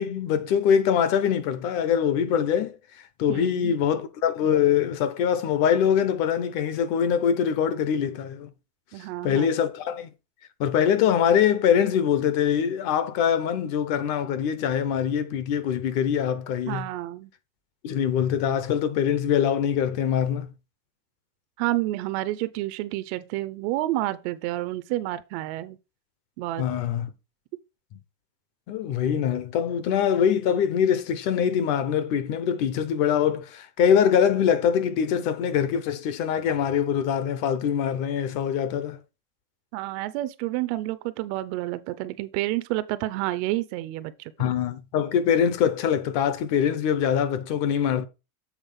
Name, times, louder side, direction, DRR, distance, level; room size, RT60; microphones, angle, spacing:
voice 1, 0.0-2.8 3.2-8.5 9.2-10.1 10.6-16.9 17.8-20.5 26.6-27.1 28.7-39.0 44.4-48.1, left 8 dB, 45° left, 0.9 m, -23 dB
voice 2, 3.3-3.8 8.9-9.5 16.7-17.3 21.6-25.8 26.4-26.7 39.7-44.6, right 16 dB, 45° right, 0.5 m, -29 dB
7.4 x 3.7 x 5.3 m
supercardioid pair, 165°, 46 cm